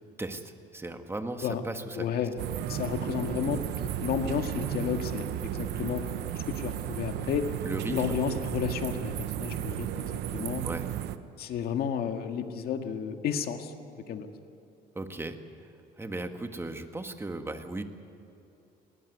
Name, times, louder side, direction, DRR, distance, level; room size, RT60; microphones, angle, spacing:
voice 1, 0.2-2.1 7.7-8.1 10.6-10.9 15.0-17.8, right 2 dB, 15° right, 6 dB, 1.8 m, -37 dB
voice 2, 2.0-2.3 2.7-3.6 4.0-6.0 6.3-7.5 7.9-10.6 11.4-13.7 14.1-14.3, left 8 dB, 65° left, 6 dB, 1.9 m, -32 dB
sound 1, 2.4-11.2, right 12 dB, 85° right, 1.0 m, -34 dB
20.5 x 18.0 x 9.5 m, 2.8 s
cardioid pair, 110°, 17 cm